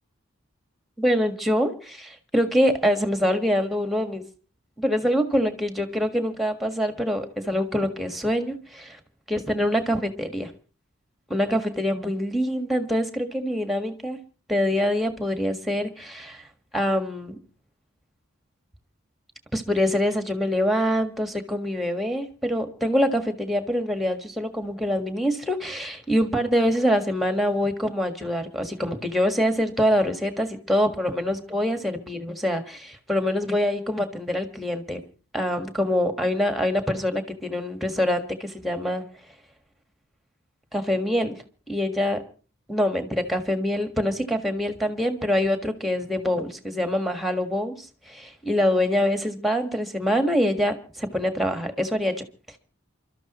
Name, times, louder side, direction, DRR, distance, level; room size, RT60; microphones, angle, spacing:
voice 1, 1.0-4.2 4.8-9.0 9.3-10.5 11.3-14.2 14.5-16.4 16.7-17.4 19.5-35.0 35.3-39.0 40.7-41.4 41.7-42.2 42.7-52.2, equal, ahead, 6 dB, 1.6 m, -25 dB
28.5 x 13.0 x 3.1 m, 0.37 s
head